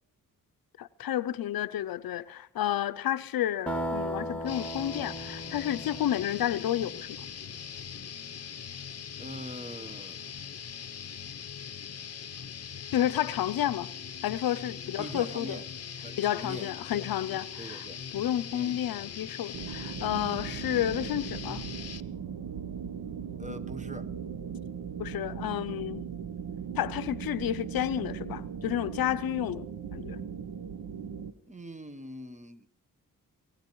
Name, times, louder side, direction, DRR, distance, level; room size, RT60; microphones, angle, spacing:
voice 1, 0.8-7.2 12.9-13.9 14.2-15.6 16.2-17.8 18.1-21.6 25.0-26.0 26.8-29.7 29.9-30.2, left 11 dB, 85° left, 0.5 m, -31 dB
sound 1, 3.7-7.4, equal, 5° left, 1.6 m, -37 dB
sound 2, 4.4-22.0, left 7 dB, 45° left, 0.7 m, -41 dB
voice 2, 9.2-10.4 15.0-15.7 16.0-17.1 17.6-18.0 18.5-18.8 23.4-24.1 31.5-32.7, equal, 20° right, 1.0 m, -43 dB
sound 3, 19.5-31.3, right 7 dB, 80° right, 0.9 m, -38 dB
28.0 x 16.0 x 3.0 m
cardioid pair, 60°, 35 cm